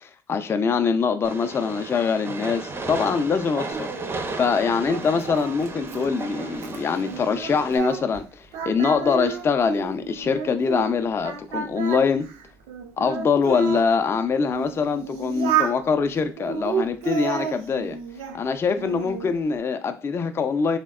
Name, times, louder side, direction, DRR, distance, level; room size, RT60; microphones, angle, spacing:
voice 1, 0.0-12.3 13.0-18.0 18.3-20.8, left 5 dB, 30° left, 0.4 m, -24 dB
Train, 1.2-7.8, right 3 dB, 25° right, 0.5 m, -34 dB
Singing, 3.7-8.2 8.5-10.9 11.2-13.9 14.5-15.8 16.4-18.4 18.8-19.3, right 8 dB, 70° right, 0.5 m, -31 dB
3.3 x 2.1 x 2.3 m
hypercardioid pair, 65°, 9 cm